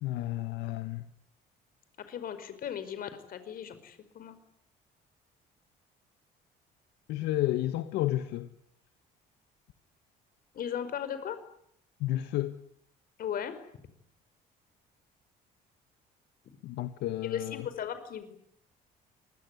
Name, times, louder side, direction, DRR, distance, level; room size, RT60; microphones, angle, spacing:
voice 1, 0.0-1.0 7.1-8.5 12.0-12.5 16.6-17.7, left 14 dB, 85° left, 1.5 m, -31 dB
voice 2, 2.0-4.4 10.5-11.4 13.2-13.6 17.2-18.4, left 9 dB, 60° left, 5.2 m, -37 dB
26.0 x 21.0 x 9.8 m
cardioid pair, 110°, 17 cm